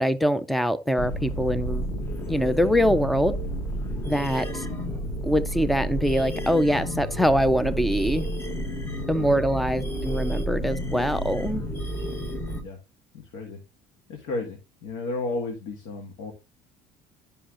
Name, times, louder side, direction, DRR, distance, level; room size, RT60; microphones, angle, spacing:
voice 1, 0.0-1.8 2.3-3.3 4.0-4.7 5.2-8.3 9.1-11.6, equal, ahead, 0.4 m, -23 dB
sound 1, 1.0-12.6, equal, 20° left, 0.8 m, -31 dB
voice 2, 13.1-13.6 14.1-16.3, left 3 dB, 85° left, 1.7 m, -33 dB
11.5 x 5.5 x 2.5 m
cardioid pair, 170°, 13 cm